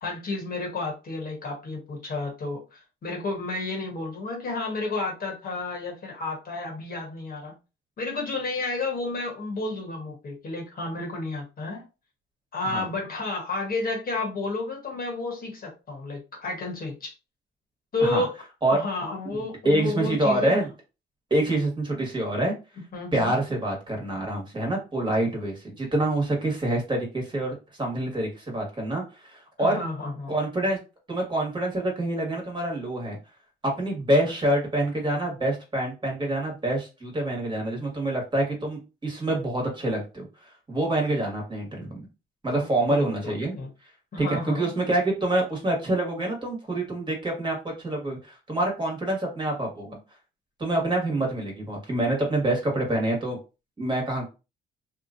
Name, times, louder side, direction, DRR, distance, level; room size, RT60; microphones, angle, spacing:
voice 1, 0.0-7.5 8.0-11.8 12.5-17.1 17.9-20.6 22.9-23.3 29.6-30.4 42.5-43.7 44.1-44.7, left 2 dB, 45° left, 1 dB, 1.2 m, -31 dB
voice 2, 19.6-20.7 21.3-22.5 23.1-29.8 30.3-30.8 31.1-33.2 33.6-42.0 42.4-43.6 44.2-50.0 50.6-53.4 53.8-54.2, right 1 dB, 25° right, 0 dB, 1.3 m, -26 dB
2.8 x 2.3 x 2.5 m, 0.29 s
cardioid pair, 90°, 20 cm